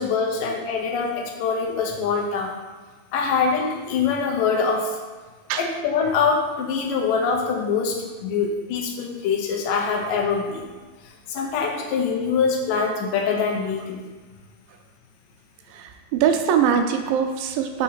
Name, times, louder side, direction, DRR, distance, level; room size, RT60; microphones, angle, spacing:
voice 1, 0.0-2.5 3.1-5.0 5.6-10.6 11.0-14.1, left 5 dB, 75° left, 2 dB, 2.2 m, -24 dB
voice 2, 15.7-17.8, right 8 dB, 80° right, 5 dB, 2.3 m, -22 dB
5.6 x 4.2 x 5.6 m, 1.3 s
omnidirectional pair, 4.1 m